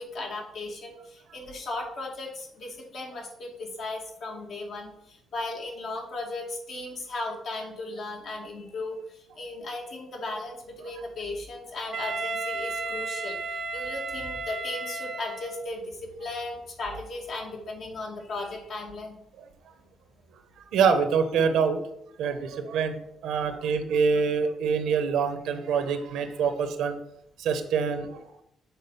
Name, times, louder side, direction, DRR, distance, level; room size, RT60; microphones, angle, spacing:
voice 1, 0.0-19.2, left 2 dB, 60° left, 0 dB, 2.2 m, -36 dB
Wind instrument woodwind instrument, 11.9-15.8, right 3 dB, 55° right, 0.7 m, -33 dB
voice 2, 20.7-21.8 22.2-23.0 23.2-27.0 27.4-28.4, right 6 dB, 85° right, 8 dB, 1.0 m, -25 dB
7.2 x 3.8 x 5.7 m, 0.75 s
cardioid pair, 90°, 0 cm